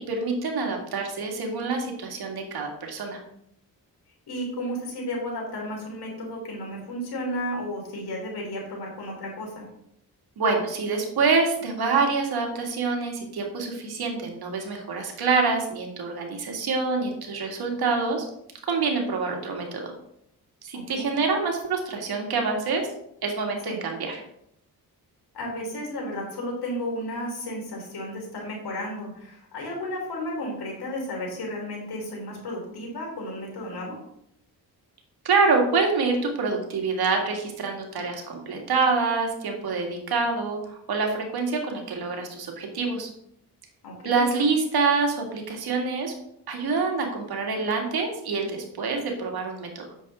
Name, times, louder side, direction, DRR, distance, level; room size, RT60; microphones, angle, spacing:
voice 1, 0.1-3.2 10.4-18.3 18.7-19.9 20.6-22.9 23.2-24.2 35.2-43.1 44.0-46.1 46.5-49.8, right 4 dB, 70° right, 1 dB, 2.2 m, -26 dB
voice 2, 4.3-9.6 20.7-21.1 23.7-23.8 25.3-34.0 43.8-44.3, left 1 dB, 75° left, -1 dB, 3.8 m, -33 dB
8.3 x 7.2 x 3.7 m, 0.74 s
cardioid pair, 65°, 39 cm